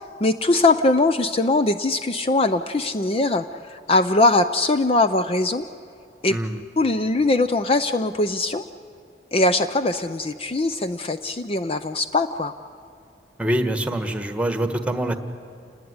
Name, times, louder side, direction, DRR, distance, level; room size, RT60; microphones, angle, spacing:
voice 1, 0.2-5.6 6.2-6.4 6.8-8.6 9.3-12.5, left 2 dB, 35° left, 10 dB, 0.6 m, -21 dB
voice 2, 13.4-15.2, right 1 dB, 5° right, 8 dB, 1.4 m, -24 dB
28.0 x 19.5 x 9.5 m, 2.6 s
head